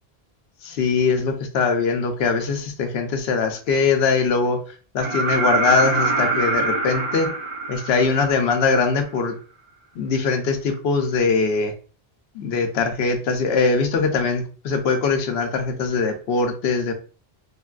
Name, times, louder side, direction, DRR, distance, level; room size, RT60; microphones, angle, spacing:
voice 1, 0.6-4.6 4.9-7.3 7.7-9.4 10.0-11.7 12.3-16.9, left 4 dB, 80° left, 5 dB, 0.9 m, -21 dB
sound 1, 5.0-8.8 10.7-10.8, right 3 dB, 50° right, 0.4 m, -24 dB
3.3 x 2.2 x 2.4 m, 0.38 s
omnidirectional pair, 1.0 m